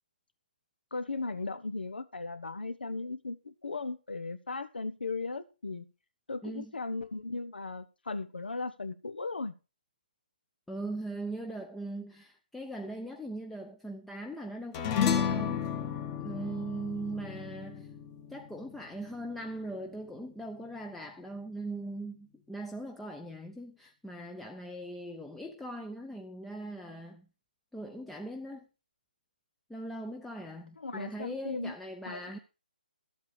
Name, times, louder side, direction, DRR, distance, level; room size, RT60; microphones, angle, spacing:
voice 1, 0.9-5.9 6.3-9.5 30.8-31.7 32.1-32.3, left 3 dB, 85° left, 1.1 m, -37 dB
voice 2, 10.7-15.7 16.2-18.0 18.3-27.3 27.7-28.7 29.7-32.4, right 1 dB, 5° left, 0.6 m, -40 dB
sound 1, 14.7-19.4, left 8 dB, 25° left, 1.2 m, -32 dB
13.5 x 8.1 x 4.9 m
hypercardioid pair, 150°, 5 cm